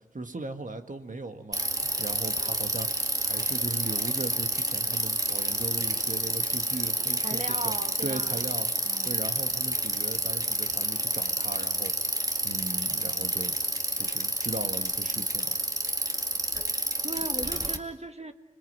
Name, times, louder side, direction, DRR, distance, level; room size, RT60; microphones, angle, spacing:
voice 1, 0.1-2.9 3.2-7.7 8.0-8.7 9.1-15.6, right 3 dB, 70° right, 7 dB, 1.7 m, -38 dB
Bicycle, 1.5-17.8, right 1 dB, 25° right, 2.0 m, -29 dB
voice 2, 7.1-8.4 8.8-9.2 17.0-18.3, right 2 dB, 55° right, 7 dB, 1.6 m, -37 dB
26.0 x 22.0 x 9.5 m, 1.0 s
wide cardioid pair, 40°, 14 cm